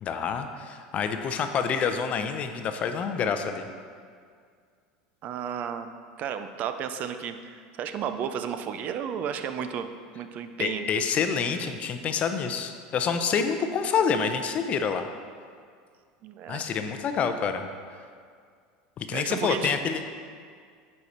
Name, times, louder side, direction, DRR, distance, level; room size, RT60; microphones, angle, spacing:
voice 1, 0.0-3.7 10.6-15.1 16.5-17.7 19.0-20.0, left 6 dB, 40° left, 7 dB, 0.6 m, -27 dB
voice 2, 5.2-9.9 10.1-10.9 16.2-16.6 19.1-19.7, right 8 dB, 45° right, 9 dB, 0.4 m, -33 dB
8.3 x 4.6 x 4.2 m, 2.1 s
supercardioid pair, 110°, 4 cm